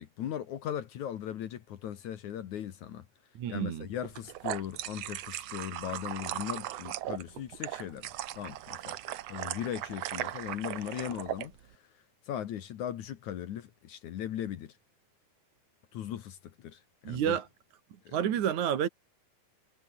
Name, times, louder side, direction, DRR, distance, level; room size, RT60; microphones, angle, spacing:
voice 1, 0.0-3.1 3.5-8.1 8.3-9.0 9.3-11.5 12.3-14.7 15.9-17.4 18.1-18.2, left 10 dB, 60° left, 2.5 m, -38 dB
voice 2, 3.4-3.9 17.0-17.5 18.1-18.9, right 9 dB, 60° right, 2.9 m, -29 dB
sound 1, 4.0-11.5, right 13 dB, 75° right, 1.4 m, -38 dB
omnidirectional pair, 4.2 m